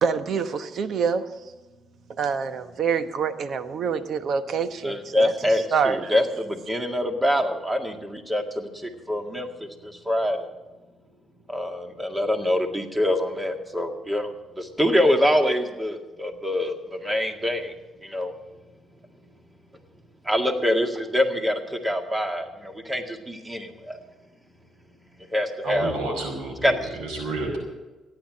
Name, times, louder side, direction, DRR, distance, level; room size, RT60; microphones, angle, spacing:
voice 1, 0.0-1.3 2.2-5.3 5.7-6.1, right 6 dB, 60° right, 1.1 m, -26 dB
voice 2, 4.8-10.5 11.5-14.3 14.6-16.7 17.0-17.7 18.0-18.3 20.3-24.0 25.3-25.9 26.6-26.7, left 1 dB, 15° right, 2.0 m, -25 dB
voice 3, 25.6-27.6, right 2 dB, 85° right, 5.0 m, -30 dB
14.5 x 10.5 x 7.6 m
cardioid pair, 90°, 0 cm